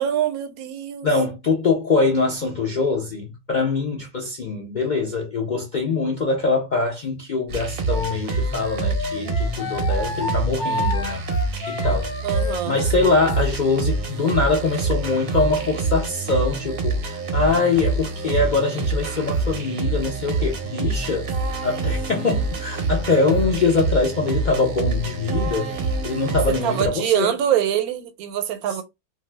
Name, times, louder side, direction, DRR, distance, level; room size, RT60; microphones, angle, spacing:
voice 1, 0.0-1.1 12.2-12.8 26.5-28.8, right 10 dB, 85° right, 1.0 m, -24 dB
voice 2, 1.0-11.2 11.7-12.1 12.7-21.3 21.6-25.8 26.0-27.3 28.7-28.8, left 3 dB, 60° left, 0.4 m, -23 dB
sound 1, 7.5-26.9, right 3 dB, 55° right, 0.6 m, -26 dB
Wind instrument woodwind instrument, 7.9-13.3, left 3 dB, 40° left, 1.0 m, -31 dB
2.5 x 2.3 x 3.2 m
omnidirectional pair, 1.5 m